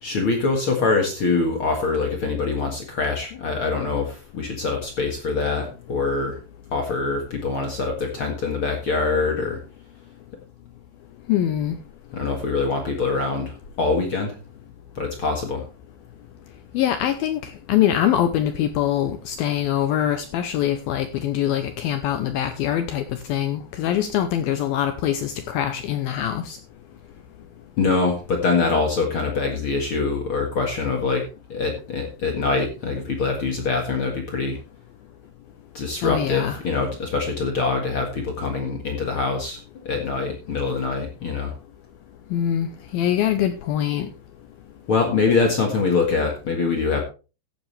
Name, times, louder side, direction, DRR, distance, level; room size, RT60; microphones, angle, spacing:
voice 1, 0.0-6.4 6.7-9.6 12.1-14.3 14.9-15.7 27.8-34.6 35.7-41.5 44.9-47.0, left 4 dB, 65° left, 1.3 m, -24 dB
voice 2, 11.3-11.8 16.7-26.6 36.0-36.6 42.3-44.1, left 11 dB, 85° left, 2.1 m, -23 dB
15.0 x 9.2 x 3.3 m
omnidirectional pair, 5.2 m